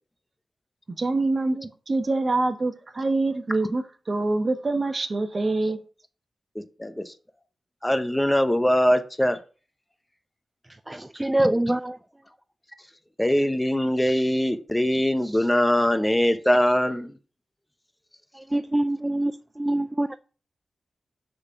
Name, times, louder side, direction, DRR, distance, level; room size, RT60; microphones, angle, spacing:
voice 1, 0.9-5.8, right 2 dB, 50° right, 1.0 m, -25 dB
voice 2, 6.5-7.1 7.8-9.4 13.2-17.1, equal, 10° left, 0.9 m, -22 dB
voice 3, 10.7-12.0 18.3-20.2, right 1 dB, 20° right, 0.4 m, -25 dB
6.3 x 4.0 x 5.9 m
cardioid pair, 50°, 0 cm